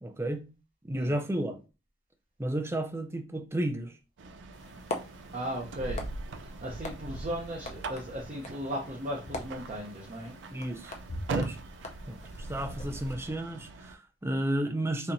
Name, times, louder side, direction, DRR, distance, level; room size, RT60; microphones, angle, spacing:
voice 1, 0.0-0.4 0.8-1.6 2.4-3.9 10.5-10.9 11.3-11.6 12.1-15.1, right 1 dB, 15° right, 0.5 m, -32 dB
sound 1, 4.2-14.0, right 3 dB, 85° right, 0.4 m, -41 dB
sound 2, 4.5-13.1, left 2 dB, 40° left, 0.6 m, -43 dB
voice 2, 5.3-6.1 6.4-10.4, equal, 45° right, 0.8 m, -36 dB
4.2 x 2.9 x 2.6 m
head